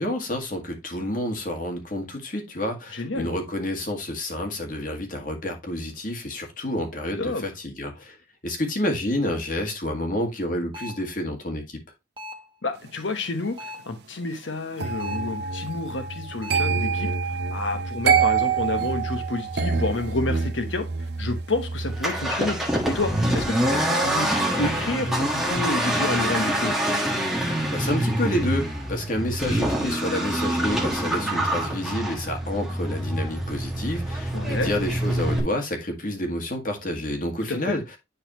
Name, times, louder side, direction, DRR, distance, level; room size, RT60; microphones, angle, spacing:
voice 1, 0.0-8.2 8.4-11.8 27.4-37.8, left 1 dB, 45° left, 1.8 m, -29 dB
voice 2, 2.9-3.3 7.2-7.4 12.6-22.6 22.8-26.8 34.3-34.7 37.5-37.8, left 2 dB, 85° left, 1.1 m, -29 dB
sound 1, 10.7-11.1 12.2-12.6 13.6-14.0 15.0-15.4 16.4-16.8, left 1 dB, 25° right, 1.2 m, -39 dB
sound 2, 14.8-25.8 26.0-26.4, right 5 dB, 60° right, 0.6 m, -27 dB
Accelerating revving vroom, 21.9-35.4, right 1 dB, ahead, 1.3 m, -26 dB
9.8 x 4.1 x 2.9 m
head